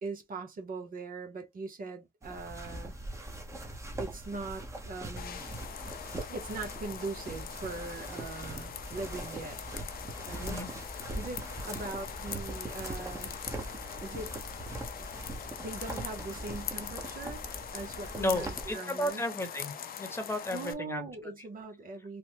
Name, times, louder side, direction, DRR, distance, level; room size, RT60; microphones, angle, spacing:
voice 1, 0.0-2.9 4.0-5.4 6.3-9.6 10.2-10.6 11.2-13.3 14.0-14.4 15.6-17.4 17.7-19.2 20.5-22.2, right 3 dB, 50° right, 0.8 m, -41 dB
sound 1, 2.2-18.7, right 1 dB, 15° right, 0.9 m, -41 dB
sound 2, 5.2-20.7, left 9 dB, 55° left, 0.5 m, -42 dB
voice 2, 18.2-19.7 20.0-21.1, left 1 dB, 15° left, 1.0 m, -33 dB
3.1 x 2.1 x 2.9 m
cardioid pair, 90°, 18 cm